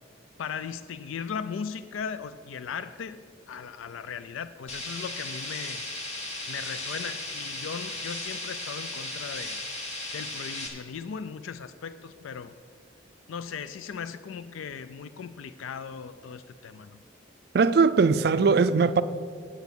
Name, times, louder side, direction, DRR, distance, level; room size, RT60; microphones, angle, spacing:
voice 1, 0.4-3.2 3.5-5.8 6.5-9.6 10.1-12.5 13.3-16.9, left 6 dB, 85° left, 0.4 m, -37 dB
sound 1, 4.7-10.7, left 2 dB, 35° left, 1.4 m, -36 dB
voice 2, 17.5-19.0, right 4 dB, 50° right, 0.4 m, -20 dB
9.1 x 8.2 x 6.8 m
head